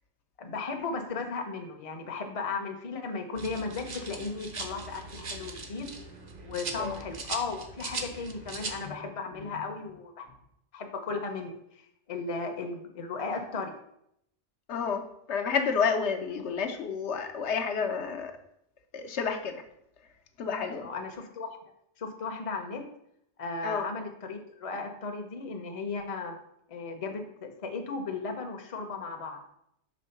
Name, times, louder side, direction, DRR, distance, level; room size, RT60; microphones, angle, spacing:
voice 1, 0.4-5.9 6.4-10.3 10.7-11.8 12.1-13.7 20.8-21.5 22.0-22.9 23.4-26.4 26.7-29.4, left 4 dB, 35° left, 4 dB, 0.7 m, -36 dB
sound 1, 3.4-8.9, right 3 dB, 45° right, 0.7 m, -40 dB
voice 2, 14.7-18.3 18.9-19.6 20.4-20.9 23.6-23.9, left 6 dB, 75° left, 4 dB, 0.9 m, -30 dB
5.2 x 3.5 x 5.7 m, 0.75 s
omnidirectional pair, 1.2 m